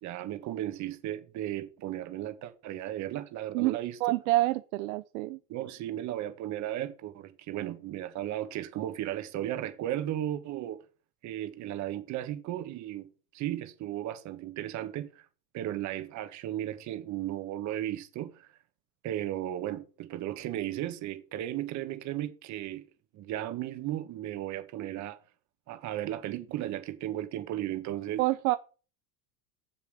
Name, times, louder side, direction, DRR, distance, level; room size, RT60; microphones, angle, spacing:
voice 1, 0.0-4.0 5.5-10.8 11.2-15.3 15.5-18.5 19.0-22.9 23.1-25.2 25.7-28.2, right 13 dB, 35° right, 1.5 m, -35 dB
voice 2, 3.5-5.4 28.2-28.6, right 18 dB, 65° right, 0.8 m, -27 dB
7.3 x 7.2 x 6.4 m
supercardioid pair, 140°, 46 cm